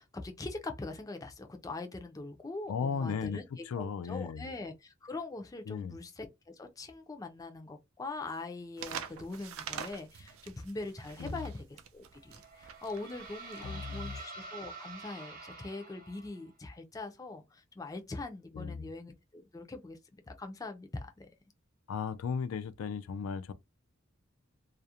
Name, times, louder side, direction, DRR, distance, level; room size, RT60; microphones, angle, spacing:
voice 1, 0.0-21.3, left 2 dB, 15° left, 0.4 m, -42 dB
voice 2, 2.7-4.5 5.7-6.0 11.2-11.4 13.6-14.2 18.5-18.9 21.9-23.5, left 6 dB, 85° left, 0.3 m, -36 dB
sound 1, 8.8-14.2, right 7 dB, 85° right, 0.4 m, -44 dB
sound 2, 12.2-16.5, right 3 dB, 45° right, 0.8 m, -47 dB
2.4 x 2.0 x 2.7 m
head